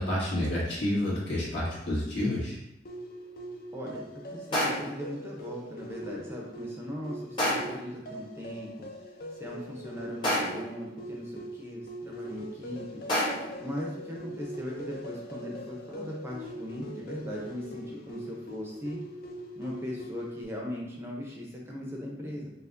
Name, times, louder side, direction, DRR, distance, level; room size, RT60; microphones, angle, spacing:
voice 1, 0.0-2.6, left 1 dB, 70° left, -7 dB, 1.5 m, -29 dB
sound 1, 2.8-20.4, equal, 50° left, 0.5 m, -42 dB
voice 2, 3.7-8.9 9.4-13.0 13.6-19.0 19.6-22.5, left 1 dB, 15° right, -2 dB, 0.5 m, -39 dB
sound 2, 4.5-5.0 7.4-7.9 10.2-10.8 13.1-13.6, equal, 25° left, 0.9 m, -29 dB
5.5 x 2.1 x 2.5 m, 0.87 s
head